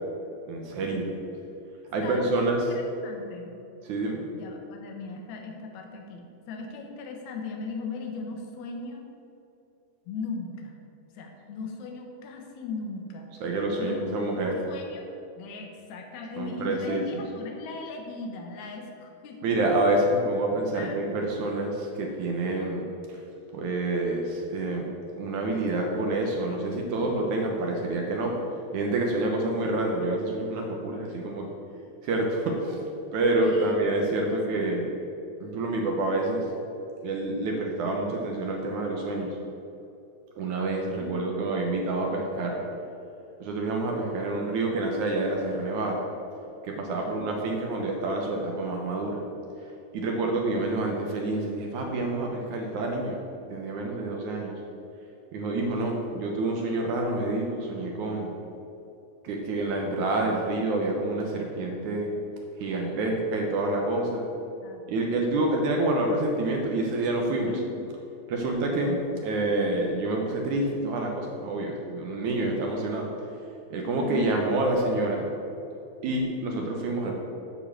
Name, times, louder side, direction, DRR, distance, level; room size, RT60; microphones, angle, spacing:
voice 1, 0.5-1.1 1.9-2.6 3.9-4.3 13.4-14.5 16.4-17.2 19.4-22.9 23.5-24.8 25.2-28.4 28.7-31.5 32.0-32.8 33.1-34.9 35.4-36.5 37.0-39.4 40.4-42.6 43.4-46.0 46.6-49.2 49.9-53.2 53.5-54.5 55.3-58.3 59.2-62.1 62.6-64.3 64.9-67.5 68.3-73.1 73.7-75.3 76.0-77.1, right 2 dB, 70° right, 1 dB, 2.1 m, -27 dB
voice 2, 2.0-3.5 4.3-9.1 10.1-10.8 11.1-13.3 13.8-15.0 15.4-19.4 20.7-21.0 29.2-29.6 33.4-33.8 34.1-34.8 41.0-41.3 47.0-47.4 62.6-63.1 64.6-65.1 67.4-67.7 74.0-74.4, left 4 dB, 65° left, 2 dB, 2.1 m, -38 dB
10.0 x 4.6 x 7.2 m, 2.8 s
omnidirectional pair, 4.2 m